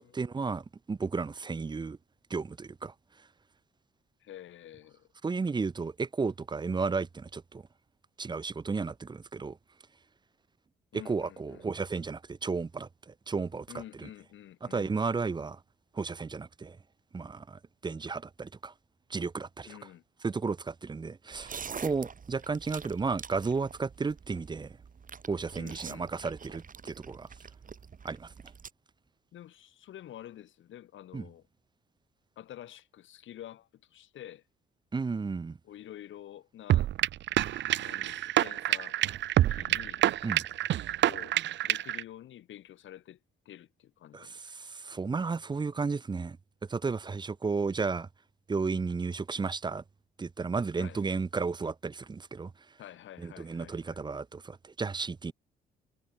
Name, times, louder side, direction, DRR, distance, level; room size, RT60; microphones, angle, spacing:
voice 1, 0.0-2.0 2.3-2.9 5.2-7.6 8.2-9.6 11.1-13.7 14.0-14.1 14.6-15.6 15.9-16.8 17.1-18.7 19.1-19.8 20.2-24.7 25.3-27.3 28.0-28.3 31.1-31.3 34.9-35.6 40.2-40.4 44.1-46.4 46.7-48.1 48.5-49.8 50.2-52.5 53.2-55.3, right 4 dB, 20° right, 0.7 m, -33 dB
voice 2, 4.2-5.1 10.9-11.7 13.7-14.9 19.7-20.0 25.6-26.3 29.3-31.4 32.4-34.4 35.6-36.9 37.8-39.2 39.5-40.1 41.0-41.4 41.6-43.2 43.5-44.5 50.8-51.0 52.8-54.0, left 12 dB, 75° left, 5.8 m, -48 dB
sound 1, 21.3-28.7, right 6 dB, 40° right, 5.6 m, -46 dB
sound 2, 36.7-42.0, right 13 dB, 65° right, 0.7 m, -27 dB
cardioid pair, 90°, 20 cm